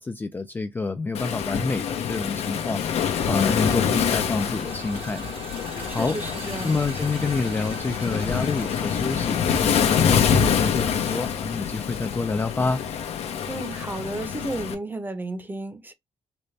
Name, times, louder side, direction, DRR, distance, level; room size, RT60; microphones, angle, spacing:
voice 1, 0.0-2.8 3.2-5.2 5.9-6.2 6.6-12.8, left 3 dB, 20° left, 0.3 m, -28 dB
Waves surf, 1.1-14.7, left 7 dB, 75° left, 0.7 m, -26 dB
sound 1, 3.3-11.1, right 5 dB, 60° right, 0.9 m, -43 dB
voice 2, 5.9-6.8 13.5-15.9, right 2 dB, 20° right, 0.7 m, -33 dB
4.0 x 2.1 x 3.2 m
cardioid pair, 105°, 11 cm